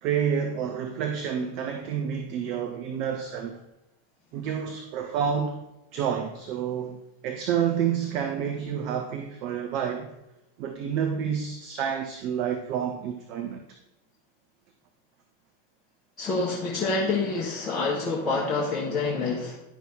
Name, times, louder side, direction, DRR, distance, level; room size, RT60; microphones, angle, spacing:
voice 1, 0.0-3.6 4.3-5.6 5.9-10.1 10.6-13.6, right 8 dB, 40° right, 0.8 m, -29 dB
voice 2, 16.2-19.6, left 3 dB, 25° left, 1.3 m, -27 dB
10.0 x 5.9 x 3.6 m
figure-of-eight pair, 90°, 0 cm